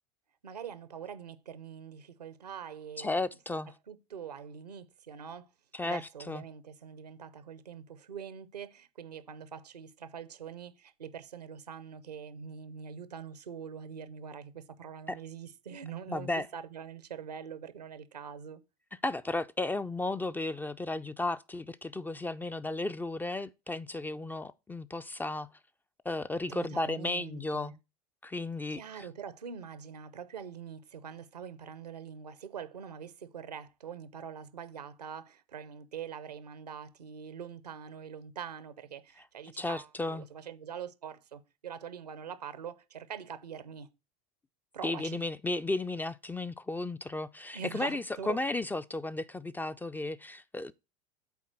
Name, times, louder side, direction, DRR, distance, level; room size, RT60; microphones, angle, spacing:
voice 1, 0.4-3.2 3.9-5.5 5.8-18.6 26.5-27.7 28.7-43.9 44.7-45.3 47.5-48.4, right 7 dB, 90° right, 0.7 m, -44 dB
voice 2, 3.0-3.7 5.7-6.0 6.3-6.4 15.1-15.2 16.1-16.5 19.0-25.5 26.1-27.8 28.2-28.8 39.6-40.3 44.8-50.7, left 2 dB, 10° left, 0.3 m, -34 dB
7.0 x 4.3 x 6.0 m
hypercardioid pair, 85°, 20 cm